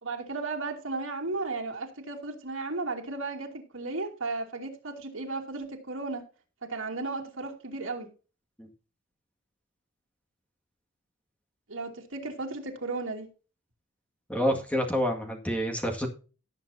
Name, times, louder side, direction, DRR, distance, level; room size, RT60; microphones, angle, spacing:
voice 1, 0.0-6.2 6.6-8.1 11.7-13.3, right 3 dB, 75° right, 2.8 m, -34 dB
voice 2, 14.3-16.1, equal, 5° left, 2.0 m, -28 dB
18.0 x 7.3 x 2.7 m
head